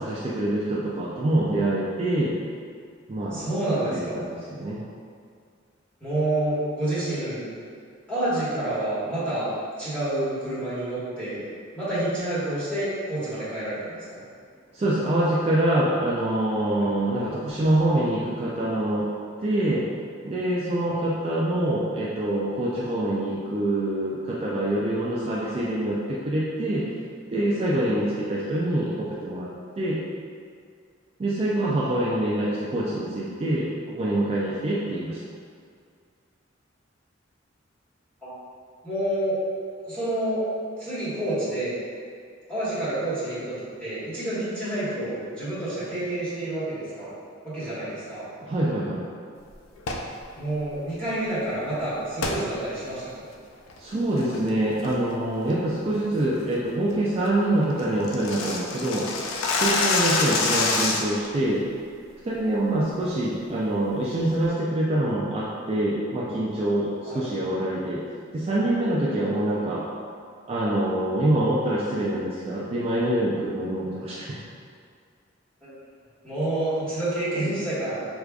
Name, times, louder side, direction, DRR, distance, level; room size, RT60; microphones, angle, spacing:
voice 1, 0.0-2.3 3.1-3.4 3.9-4.8 14.7-19.1 19.4-19.8 20.2-26.9 27.3-29.5 29.8-30.0 31.2-35.2 48.4-49.1 53.8-59.1 59.5-61.6 62.2-68.0 68.3-69.9 70.5-74.4, right 1 dB, 30° right, -6 dB, 0.3 m, -25 dB
voice 2, 3.2-4.2 6.0-7.5 8.1-9.5 9.8-11.4 11.7-14.2 16.8-16.9 20.8-20.9 38.2-38.3 38.8-39.4 39.8-40.4 40.8-41.7 42.5-47.1 47.4-48.2 50.3-53.1 67.1-67.2 69.2-69.6 75.6-75.7 76.2-78.0, right 1 dB, 5° left, -13 dB, 1.3 m, -28 dB
sound 1, 49.8-50.1 52.2-52.4 52.9-53.0 53.5-53.8 54.2-54.5 54.8-55.1 55.5-55.6 56.0-56.2 56.6-56.7 57.0-57.1 57.3-57.4 57.6-61.3, left 3 dB, 80° left, 0.4 m, -26 dB
4.7 x 2.4 x 2.3 m, 2.2 s
head